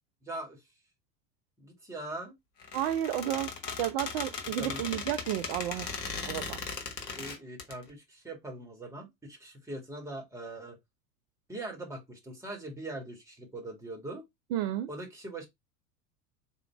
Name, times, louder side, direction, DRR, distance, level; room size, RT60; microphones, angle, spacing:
voice 1, 0.2-0.6 1.6-2.3 4.6-4.8 7.1-10.8 11.5-14.2 14.9-15.5, right 2 dB, 5° right, 1.8 m, -41 dB
Squeak, 2.6-7.7, left 5 dB, 80° left, 1.1 m, -38 dB
voice 2, 2.7-3.5 3.8-6.6 14.5-14.9, right 12 dB, 40° right, 0.4 m, -32 dB
3.7 x 2.7 x 4.4 m
figure-of-eight pair, 80°, 48 cm